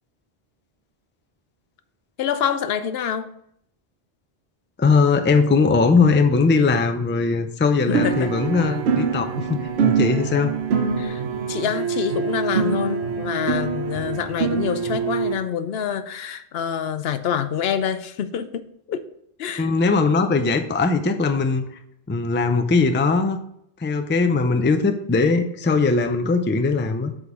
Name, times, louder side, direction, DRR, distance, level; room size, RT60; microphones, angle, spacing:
voice 1, 2.2-3.3 7.8-8.3 11.0-11.2 11.5-19.1 19.4-19.7, left 8 dB, 75° left, 11 dB, 0.8 m, -26 dB
voice 2, 4.8-10.6 19.6-21.7 22.1-23.4 23.8-27.1, left 4 dB, 15° left, 7 dB, 0.4 m, -20 dB
sound 1, 7.9-15.3, right 6 dB, 85° right, 1.0 m, -24 dB
8.0 x 3.8 x 5.0 m, 0.72 s
omnidirectional pair, 1.1 m